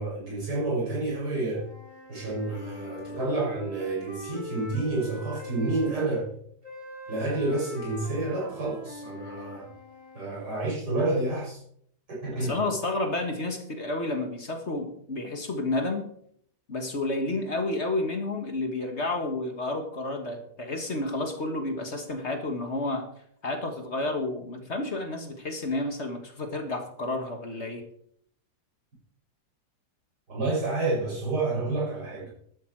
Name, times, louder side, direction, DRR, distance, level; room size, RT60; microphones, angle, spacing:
voice 1, 0.0-1.7 2.1-6.3 7.1-9.7 10.2-11.6 12.1-12.5 30.3-32.3, right 2 dB, 80° right, 6.9 m, -29 dB
Wind instrument woodwind instrument, 1.5-6.0 6.6-10.3, left 1 dB, 15° right, 2.7 m, -43 dB
voice 2, 12.3-16.1 16.7-23.1 23.4-27.9, left 2 dB, 40° left, 1.9 m, -30 dB
12.5 x 12.0 x 4.7 m
omnidirectional pair, 1.8 m